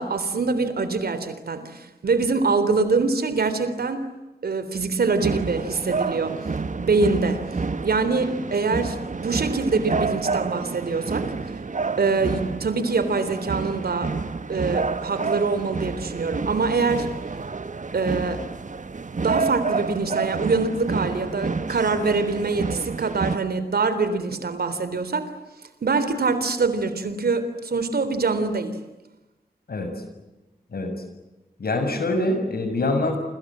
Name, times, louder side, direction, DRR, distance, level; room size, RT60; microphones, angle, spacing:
voice 1, 0.0-4.1 4.4-6.4 6.8-7.4 7.8-11.3 12.0-14.1 14.5-17.1 17.9-18.4 19.2-25.3 25.8-28.8, right 4 dB, 75° right, 11 dB, 3.6 m, -24 dB
sound 1, 5.2-23.4, right 4 dB, 50° right, 1.5 m, -29 dB
voice 2, 31.6-33.2, left 2 dB, 75° left, 6 dB, 7.1 m, -24 dB
30.0 x 25.5 x 7.6 m, 1.1 s
cardioid pair, 40°, 16 cm